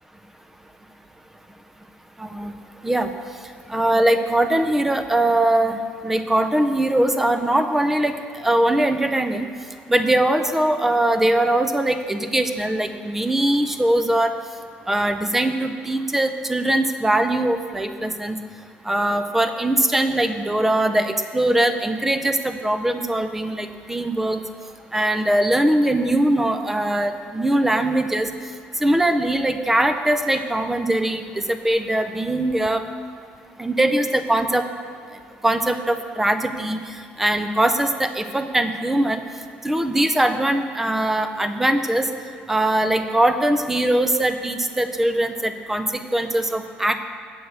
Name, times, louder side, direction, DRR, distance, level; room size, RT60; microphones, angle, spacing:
voice 1, 2.2-2.5 2.8-3.1 3.7-5.8 6.0-8.1 8.4-9.5 9.9-14.3 14.9-18.4 18.9-24.4 24.9-28.3 28.8-31.2 31.5-32.8 33.6-34.6 35.4-36.8 37.2-39.2 39.6-42.1 42.5-47.0, right 1 dB, 5° right, 8 dB, 0.5 m, -21 dB
7.7 x 6.9 x 7.9 m, 2.2 s
cardioid pair, 155°, 4 cm